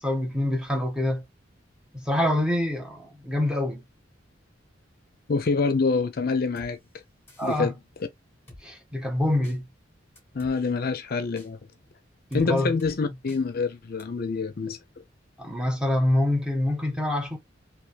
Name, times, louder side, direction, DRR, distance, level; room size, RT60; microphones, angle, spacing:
voice 1, 0.0-1.2 1.9-3.8 7.4-7.7 8.6-9.7 12.3-12.7 15.4-17.4, left 1 dB, 5° right, 1.1 m, -26 dB
voice 2, 5.3-6.8 7.4-7.7 10.3-11.6 12.3-14.8, left 4 dB, 50° left, 0.5 m, -26 dB
Drum kit, 6.6-6.7 7.3-7.6 8.5-8.6 9.4-9.6 10.2-10.5 11.4-11.5 12.3-12.5 12.8-12.9 13.3-13.4 14.0-14.1, left 1 dB, 15° left, 2.1 m, -48 dB
3.5 x 2.9 x 3.2 m
head